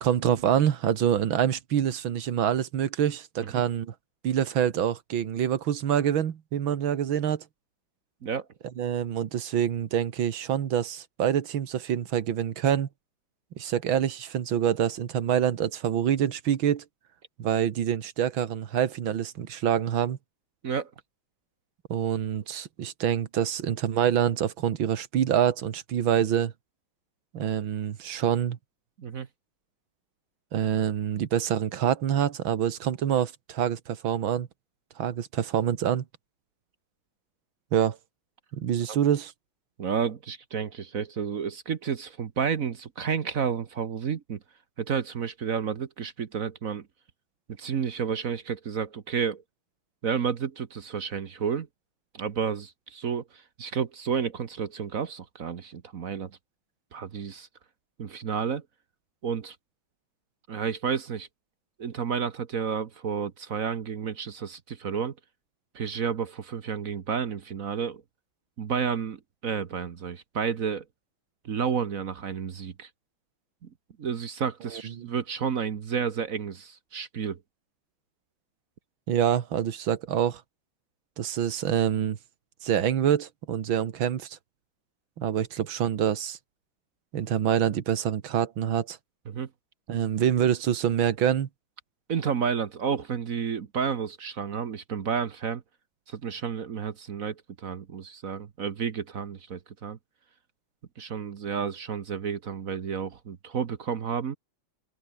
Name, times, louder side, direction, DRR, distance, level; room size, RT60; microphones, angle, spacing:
voice 1, 0.0-3.9 4.2-7.4 8.8-12.9 13.6-16.8 17.4-20.2 21.9-26.5 27.3-28.6 30.5-34.5 35.0-36.0 37.7-38.0 38.5-39.3 74.7-75.1 79.1-80.4 81.2-82.2 82.6-84.4 85.2-86.4 87.1-89.0 89.9-91.5, right 9 dB, 70° right, 2.2 m, -26 dB
voice 2, 39.8-44.4 44.8-46.9 47.6-49.4 50.0-51.7 52.1-53.2 53.6-56.3 56.9-57.5 58.0-58.6 59.2-59.5 60.5-61.3 61.8-65.1 65.7-68.0 68.6-70.8 71.4-72.9 74.0-77.4 89.3-89.5 92.1-95.6 96.1-100.0 101.0-104.4, right 6 dB, 50° right, 1.3 m, -31 dB
open air
omnidirectional pair, 2.3 m